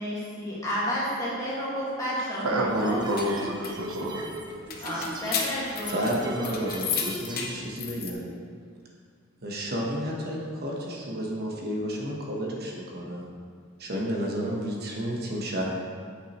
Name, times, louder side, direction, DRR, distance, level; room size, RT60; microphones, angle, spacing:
voice 1, 0.0-3.0 4.8-6.1 6.4-6.7, equal, 15° left, -8 dB, 1.8 m, -31 dB
voice 2, 2.4-4.7, right 1 dB, 75° right, 1 dB, 0.7 m, -29 dB
sound 1, 2.7-7.6, right 1 dB, 20° right, 0.5 m, -39 dB
sound 2, 2.8-8.1, left 6 dB, 45° left, 0.8 m, -34 dB
voice 3, 5.9-8.2 9.4-13.3 13.8-15.7, equal, 50° right, -2 dB, 1.0 m, -31 dB
8.2 x 5.8 x 3.0 m, 2.1 s
head